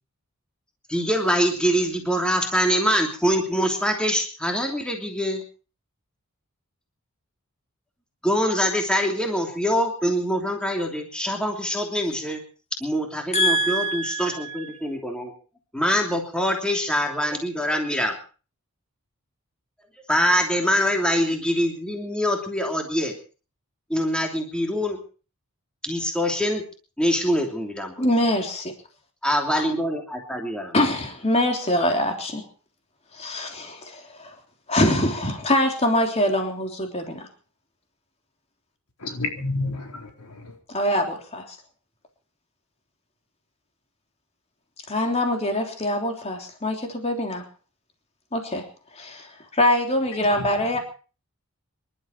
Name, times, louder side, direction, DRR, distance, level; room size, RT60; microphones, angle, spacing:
voice 1, 0.9-5.4 8.2-12.4 12.8-15.3 15.7-18.2 20.1-23.2 23.9-25.0 25.8-26.6 27.0-28.1 29.2-30.8, equal, 5° left, 2 dB, 3.0 m, -24 dB
voice 2, 13.3-14.7 28.0-28.7 30.7-32.5 33.1-34.3 34.7-37.3 40.7-41.6 44.9-47.4 48.3-48.6 48.9-50.8, left 1 dB, 30° left, 3 dB, 3.4 m, -24 dB
voice 3, 39.0-40.5, left 2 dB, 90° left, 3 dB, 4.2 m, -30 dB
26.0 x 12.5 x 4.5 m, 0.38 s
head